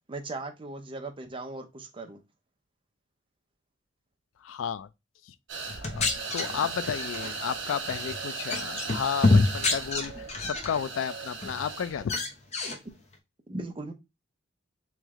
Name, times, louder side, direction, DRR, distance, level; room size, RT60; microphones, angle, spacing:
voice 1, 0.1-2.2 13.5-13.9, right 2 dB, 25° right, 0.6 m, -38 dB
voice 2, 4.4-4.9 5.3-5.4 5.6-6.1 6.3-10.1 10.4-12.2, left 7 dB, 75° left, 0.3 m, -32 dB
sound 1, 5.5-12.1, right 4 dB, 65° right, 1.0 m, -37 dB
sound 2, 5.7-7.3 7.9-8.2 8.5-10.8 11.2-11.7 12.0-12.8, left 3 dB, 35° left, 0.8 m, -27 dB
3.2 x 3.1 x 3.5 m
head